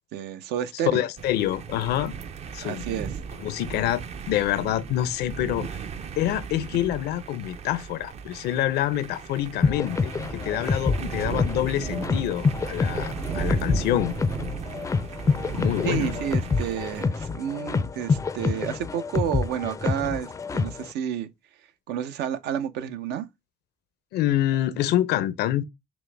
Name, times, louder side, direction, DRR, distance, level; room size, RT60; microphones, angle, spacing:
voice 1, 0.1-1.0 2.6-3.2 15.8-21.3 21.9-23.3, right 9 dB, 80° right, 0.7 m, -30 dB
voice 2, 0.9-2.1 2.5-3.0 3.4-5.7 6.2-14.1 15.5-16.2 24.1-25.6, left 12 dB, 75° left, 0.6 m, -26 dB
sound 1, 1.2-17.0, right 6 dB, 40° right, 0.5 m, -36 dB
sound 2, 9.6-20.9, left 4 dB, 20° left, 0.4 m, -27 dB
6.0 x 2.1 x 3.3 m
cardioid pair, 110°, 17 cm